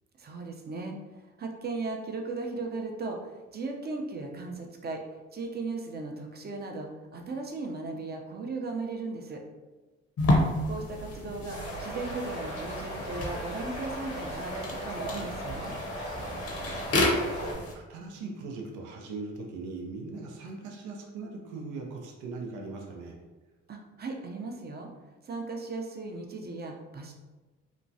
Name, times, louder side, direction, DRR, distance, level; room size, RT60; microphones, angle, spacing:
voice 1, 0.2-0.9 1.4-5.0 5.3-9.4 10.7-15.7 23.7-24.9 25.2-27.1, right 3 dB, 35° right, 2 dB, 0.6 m, -37 dB
sound 1, 10.2-17.7, left 1 dB, 50° left, 0.7 m, -31 dB
sound 2, 11.5-17.5, equal, 90° left, 1.4 m, -37 dB
voice 2, 16.0-23.2, right 3 dB, 85° right, 1 dB, 0.5 m, -41 dB
2.9 x 2.2 x 2.6 m, 1.2 s
supercardioid pair, 60°, 30 cm